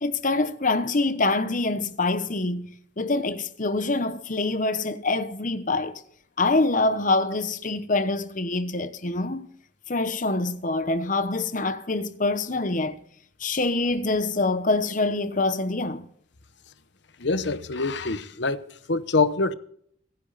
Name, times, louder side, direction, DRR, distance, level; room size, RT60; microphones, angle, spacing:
voice 1, 0.0-2.7 3.0-6.0 6.4-9.5 9.9-13.0 13.4-16.1, left 2 dB, 40° left, 1.1 m, -25 dB
voice 2, 17.2-19.5, left 3 dB, 65° left, 1.0 m, -25 dB
24.5 x 10.5 x 4.2 m
head